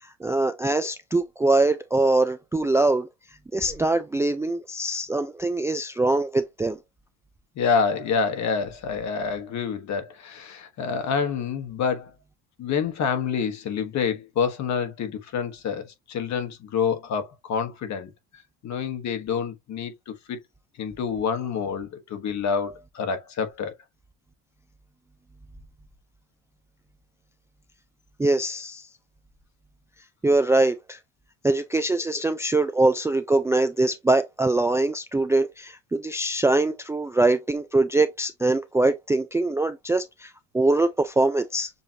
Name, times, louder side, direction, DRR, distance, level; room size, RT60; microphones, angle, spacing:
voice 1, 0.2-3.1 3.5-6.8 28.2-28.8 30.2-31.0 31.4-41.7, right 2 dB, 10° right, 0.4 m, -23 dB
voice 2, 7.6-12.1 12.6-18.1 18.6-20.4 20.8-23.7, left 6 dB, 50° left, 1.4 m, -27 dB
6.9 x 2.5 x 2.8 m
supercardioid pair, 85°, 36 cm